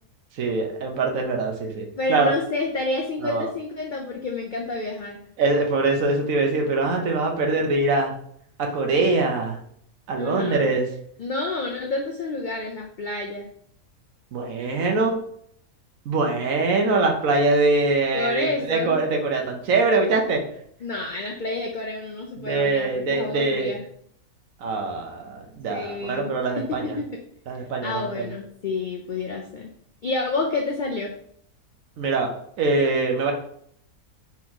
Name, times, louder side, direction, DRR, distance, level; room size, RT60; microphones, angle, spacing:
voice 1, 0.4-2.3 3.2-3.5 5.4-8.1 8.6-9.6 10.1-10.9 14.3-15.2 16.1-20.4 22.4-23.7 24.6-26.9 27.5-28.3 32.0-32.3 32.6-33.3, right 3 dB, 70° right, 2 dB, 1.2 m, -23 dB
voice 2, 2.0-5.2 10.2-10.7 11.2-13.5 18.1-19.0 20.8-23.8 25.7-26.3 26.7-27.1 27.8-29.7 30.0-31.1, left 3 dB, 65° left, 1 dB, 0.4 m, -29 dB
4.4 x 2.9 x 3.7 m, 0.65 s
omnidirectional pair, 1.5 m